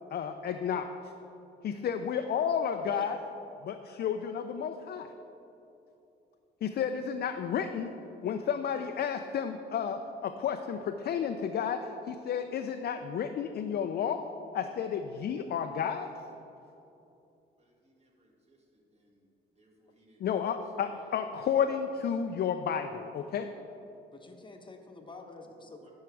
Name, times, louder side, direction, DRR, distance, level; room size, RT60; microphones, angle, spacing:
voice 1, 0.1-0.9 1.6-3.1 3.7-5.1 6.6-7.9 8.2-14.3 14.5-16.1 20.2-23.5, left 7 dB, 55° left, 6 dB, 0.4 m, -32 dB
voice 2, 2.8-3.2 24.1-25.9, left 3 dB, 25° left, 4 dB, 0.9 m, -48 dB
voice 3, 17.6-19.3 19.6-20.3 20.8-21.0 25.5-25.9, right 2 dB, 30° right, -2 dB, 1.7 m, -64 dB
11.0 x 4.7 x 4.7 m, 2.9 s
cardioid pair, 90°, 20 cm